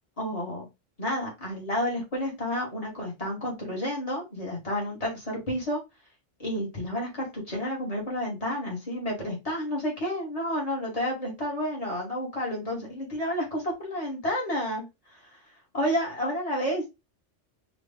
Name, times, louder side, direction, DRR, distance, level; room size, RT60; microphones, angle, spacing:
voice 1, 0.2-0.7 1.0-5.8 6.4-14.8 15.1-15.4 15.7-16.9, equal, 30° left, -2 dB, 2.2 m, -30 dB
4.9 x 2.8 x 3.6 m, 0.24 s
omnidirectional pair, 1.3 m